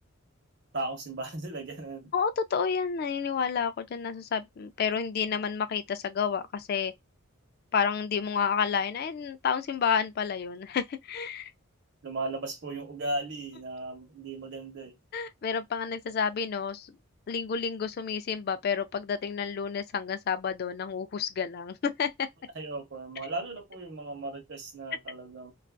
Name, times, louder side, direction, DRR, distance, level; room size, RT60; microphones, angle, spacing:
voice 1, 0.7-2.1 12.0-15.0 22.5-25.5, right 2 dB, 55° right, 0.8 m, -36 dB
voice 2, 2.1-6.9 7.7-11.5 15.1-17.0 17.3-22.3, left 6 dB, 45° left, 0.3 m, -30 dB
2.4 x 2.3 x 2.2 m
head